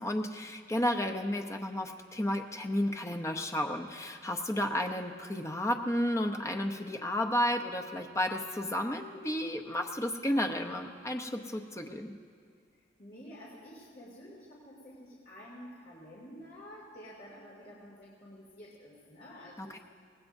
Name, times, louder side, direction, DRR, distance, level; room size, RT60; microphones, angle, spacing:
voice 1, 0.0-12.1 19.6-19.8, left 1 dB, 15° left, 4 dB, 0.7 m, -32 dB
voice 2, 13.0-19.8, equal, 45° left, -7 dB, 2.6 m, -50 dB
24.5 x 19.0 x 2.7 m, 2.2 s
head